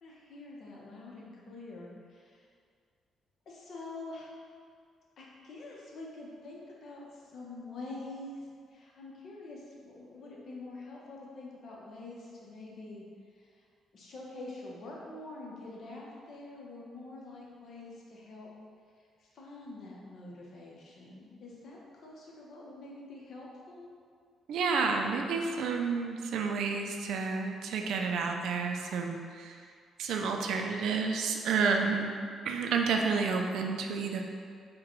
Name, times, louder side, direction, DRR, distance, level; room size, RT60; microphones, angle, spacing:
voice 1, 0.0-2.5 3.5-4.3 5.2-13.0 13.3-13.7 13.9-18.5 19.2-23.8, left 2 dB, 60° left, -3 dB, 0.8 m, -46 dB
voice 2, 24.5-29.6 30.0-32.1 32.4-34.2, right 5 dB, 80° right, 3 dB, 0.3 m, -30 dB
4.7 x 2.2 x 3.0 m, 2.1 s
cardioid pair, 90°, 0 cm